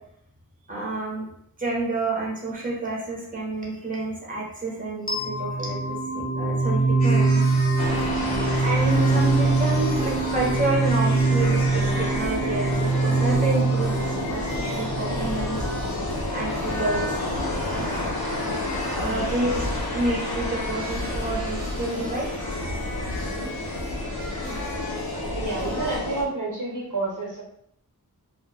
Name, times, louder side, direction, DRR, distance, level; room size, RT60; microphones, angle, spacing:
voice 1, 0.7-1.3 1.6-7.4 8.6-15.6 16.3-17.2 17.8-18.1 18.9-22.3 24.5-24.6, right 2 dB, 20° right, -3 dB, 0.9 m, -29 dB
sound 1, 5.1-16.0, right 3 dB, 25° left, 0.6 m, -23 dB
sound 2, 7.0-26.0, left 1 dB, 55° left, 0.8 m, -37 dB
sound 3, 7.8-26.2, left 2 dB, 80° left, 0.6 m, -30 dB
voice 2, 8.2-8.5 19.0-19.3 23.2-23.5 25.3-27.4, right 2 dB, 60° right, -4 dB, 0.8 m, -30 dB
2.3 x 2.1 x 3.3 m, 0.70 s
wide cardioid pair, 40°, 36 cm